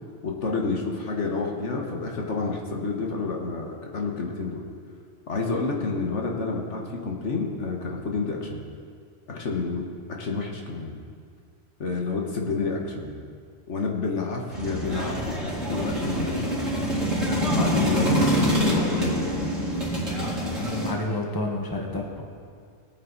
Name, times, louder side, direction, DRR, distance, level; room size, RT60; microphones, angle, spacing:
voice 1, 0.2-4.6 5.3-8.6 9.3-9.8 10.1-10.9 11.8-13.2 13.7-16.6 17.5-19.5, left 4 dB, 65° left, 0 dB, 1.7 m, -29 dB
sound 1, 14.5-20.9, equal, 60° right, 2.9 m, -25 dB
voice 2, 20.6-22.2, left 2 dB, 15° left, 0 dB, 1.4 m, -30 dB
20.0 x 9.2 x 4.1 m, 2.2 s
omnidirectional pair, 1.3 m